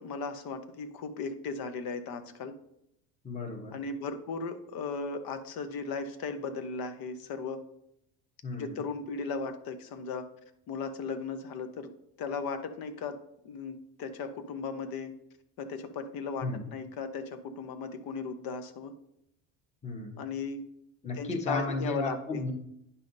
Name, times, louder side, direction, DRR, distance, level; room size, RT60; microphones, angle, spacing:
voice 1, 0.0-2.6 3.7-7.6 8.6-10.3 10.7-11.9 12.2-13.2 13.4-15.1 15.6-18.9 20.2-20.6 21.2-22.5, left 4 dB, 55° left, 9 dB, 0.9 m, -36 dB
voice 2, 3.2-3.8 8.4-8.8 16.4-16.7 19.8-20.2 21.0-22.5, left 2 dB, 15° left, 1 dB, 1.1 m, -34 dB
9.7 x 5.7 x 2.7 m, 0.78 s
cardioid pair, 135°, 42 cm